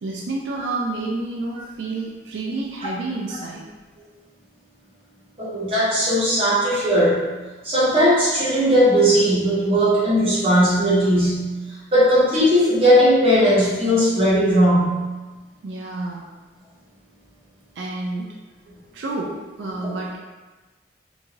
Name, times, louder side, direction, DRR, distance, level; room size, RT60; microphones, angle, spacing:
voice 1, 0.0-3.7 15.6-16.2 17.8-18.3 18.9-19.3 19.6-20.2, right 2 dB, 85° right, -2 dB, 0.4 m, -29 dB
voice 2, 5.4-7.2 7.6-11.5 11.9-14.9 19.8-19.9, equal, 35° right, -9 dB, 0.9 m, -18 dB
2.6 x 2.3 x 3.1 m, 1.2 s
head